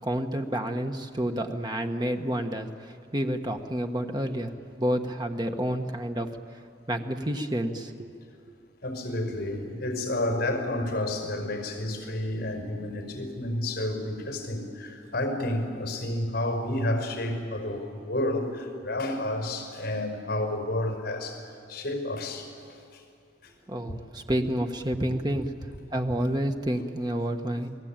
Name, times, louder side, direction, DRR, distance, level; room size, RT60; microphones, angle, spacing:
voice 1, 0.0-6.3 6.9-8.1 23.7-25.5 25.9-27.7, right 1 dB, 25° right, 5 dB, 1.3 m, -29 dB
voice 2, 8.8-22.5 22.9-23.0 23.4-23.5 23.9-24.0, left 1 dB, 55° left, 4 dB, 5.3 m, -30 dB
29.0 x 19.5 x 9.0 m, 2.4 s
head